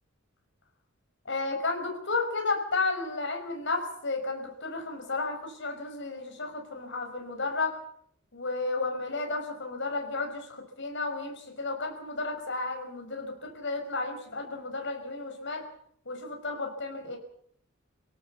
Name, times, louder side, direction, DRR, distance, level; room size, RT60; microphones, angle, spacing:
voice 1, 1.3-7.7 8.3-15.6 16.1-17.2, left 3 dB, 65° left, 3 dB, 5.6 m, -32 dB
25.0 x 17.5 x 7.2 m, 0.66 s
head